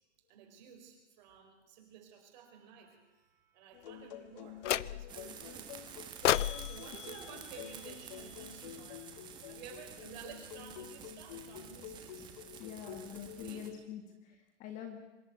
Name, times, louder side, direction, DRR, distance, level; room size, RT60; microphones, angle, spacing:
voice 1, 0.3-6.1 6.6-9.1 9.5-12.3 12.8-13.1 13.4-13.7, right 8 dB, 40° right, 3 dB, 4.7 m, -53 dB
sound 1, 3.7-13.8, left 10 dB, 35° left, 1.4 m, -49 dB
sound 2, 4.6-5.3 6.2-8.5, left 12 dB, 80° left, 0.6 m, -34 dB
sound 3, 5.1-13.7, right 8 dB, 10° right, 1.4 m, -50 dB
voice 2, 12.6-15.0, left 8 dB, 20° left, 5 dB, 1.6 m, -46 dB
24.5 x 11.5 x 9.5 m, 1.1 s
hypercardioid pair, 165°, 36 cm